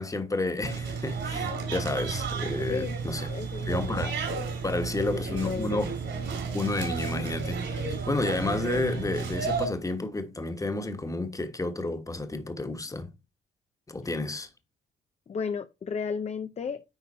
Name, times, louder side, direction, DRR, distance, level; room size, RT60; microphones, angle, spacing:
voice 1, 0.0-3.3 3.7-4.2 4.6-6.0 6.5-13.1 13.9-14.5, left 2 dB, 15° left, 1.4 m, -31 dB
sound 1, 0.6-9.7, right 5 dB, 65° right, 3.4 m, -32 dB
voice 2, 3.2-4.1 4.7-5.8 15.3-16.8, left 6 dB, 35° left, 0.5 m, -34 dB
9.8 x 4.0 x 4.2 m
cardioid pair, 90°, 20 cm